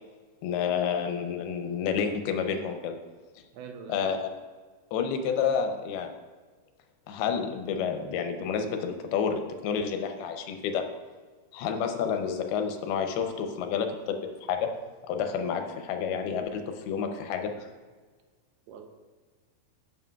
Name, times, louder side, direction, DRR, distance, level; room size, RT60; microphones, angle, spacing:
voice 1, 0.4-3.0 3.9-4.3 4.9-6.1 7.1-10.9 11.5-14.7 15.1-17.7, left 6 dB, 85° left, 6 dB, 2.7 m, -29 dB
voice 2, 3.5-4.0 18.7-18.9, right 6 dB, 85° right, 5 dB, 2.7 m, -43 dB
13.0 x 6.1 x 2.3 m, 1.4 s
omnidirectional pair, 4.4 m